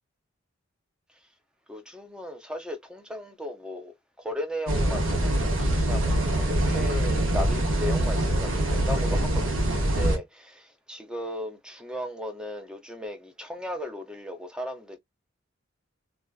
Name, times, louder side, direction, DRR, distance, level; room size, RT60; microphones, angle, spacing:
voice 1, 1.7-3.9 4.2-5.3 5.6-9.5 9.8-15.0, left 1 dB, 5° right, 0.5 m, -36 dB
sound 1, 4.7-10.2, right 1 dB, 70° right, 0.8 m, -24 dB
2.4 x 2.3 x 2.3 m
head